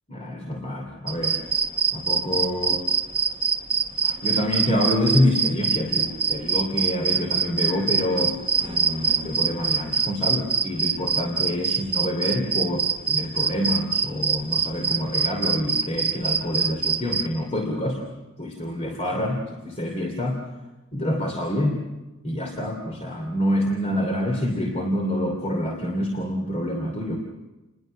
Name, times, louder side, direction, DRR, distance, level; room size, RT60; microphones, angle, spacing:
voice 1, 0.1-1.4 1.9-2.8 4.0-18.1 18.4-20.4 20.9-21.8 22.2-27.2, left 1 dB, 30° left, 3 dB, 2.8 m, -26 dB
sound 1, 1.1-17.2, right 6 dB, 25° right, 1.3 m, -24 dB
29.5 x 21.0 x 6.5 m, 1.1 s
head